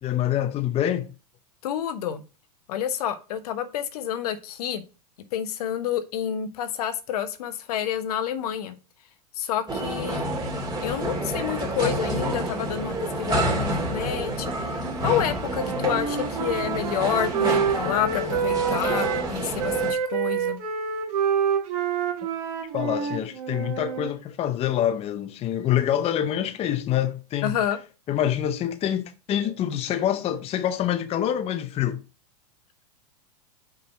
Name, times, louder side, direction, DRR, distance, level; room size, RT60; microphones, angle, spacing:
voice 1, 0.0-1.1 22.7-27.6 28.1-32.0, left 10 dB, 30° left, 0.6 m, -26 dB
voice 2, 1.6-2.2 2.7-4.8 5.3-8.7 9.4-10.3 10.8-14.5 15.0-20.6 27.4-27.8, left 9 dB, 70° left, 1.1 m, -29 dB
sound 1, 9.7-19.9, right 1 dB, 20° right, 2.3 m, -29 dB
Wind instrument woodwind instrument, 15.5-19.3 19.6-24.1, right 7 dB, 60° right, 1.5 m, -27 dB
5.6 x 3.9 x 5.6 m
hypercardioid pair, 105°, 21 cm